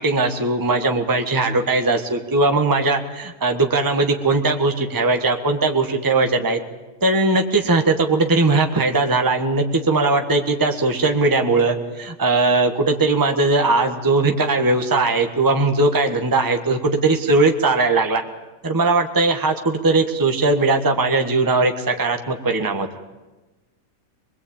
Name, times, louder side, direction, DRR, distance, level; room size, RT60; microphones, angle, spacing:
voice 1, 0.0-6.6 7.0-18.2 18.6-22.9, right 3 dB, 15° right, 4 dB, 1.4 m, -19 dB
24.0 x 21.0 x 8.8 m, 1.2 s
omnidirectional pair, 1.8 m